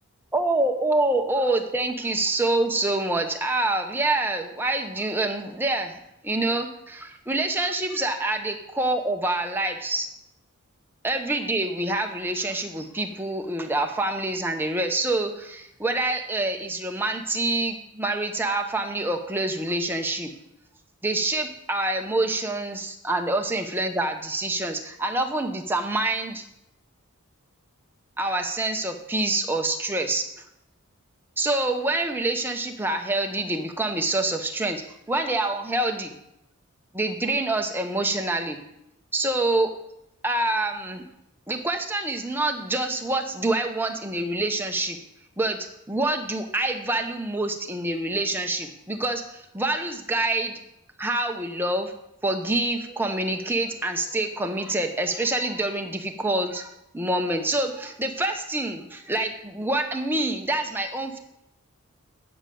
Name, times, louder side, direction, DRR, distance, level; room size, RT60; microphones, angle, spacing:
voice 1, 0.3-10.1 11.0-20.3 21.0-26.4 28.2-30.2 31.4-36.2 36.9-38.6 39.1-39.7 40.2-41.0 41.5-45.0 45.4-45.6 45.9-50.6 51.0-51.9 52.2-61.2, right 2 dB, 10° right, 4 dB, 0.8 m, -26 dB
9.5 x 5.1 x 6.9 m, 0.83 s
head